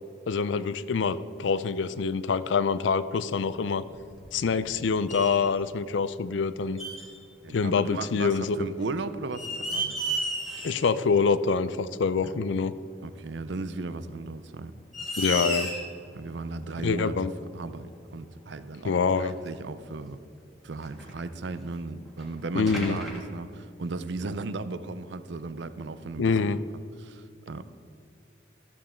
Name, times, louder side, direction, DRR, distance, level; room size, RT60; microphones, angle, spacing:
voice 1, 0.3-3.8 4.3-6.8 7.5-8.6 10.6-12.7 15.2-15.7 16.8-17.3 18.8-19.4 22.5-23.0 26.2-26.6, left 5 dB, 80° left, 15 dB, 0.4 m, -25 dB
sound 1, 3.8-4.8 5.1-5.5 6.8-7.2 8.6-8.7 9.2-11.0 11.3-11.4 12.9-13.0 14.0-14.1 14.6-14.7 14.9-16.0 17.3-17.4 18.2-18.3 18.5-18.6 19.3-19.5 20.8-21.8 22.2-22.3 22.7-23.2, right 1 dB, ahead, 1.6 m, -33 dB
voice 2, 7.4-10.2 12.3-12.4 13.0-14.7 16.1-17.1 17.5-20.2 20.6-26.6 27.0-27.6, right 3 dB, 75° right, 13 dB, 0.5 m, -36 dB
13.0 x 7.4 x 4.4 m, 2.5 s
head